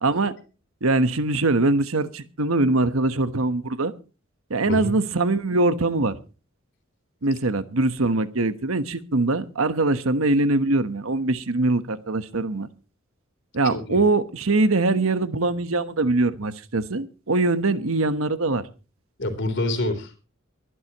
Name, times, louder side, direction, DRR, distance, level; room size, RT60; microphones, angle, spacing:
voice 1, 0.0-0.3 0.8-3.9 4.5-6.2 7.2-12.7 13.5-18.6, right 2 dB, 75° right, 12 dB, 1.2 m, -22 dB
voice 2, 4.6-4.9 13.6-14.0 19.2-20.2, left 2 dB, 60° left, 8 dB, 3.6 m, -27 dB
23.5 x 11.5 x 3.0 m, 0.34 s
head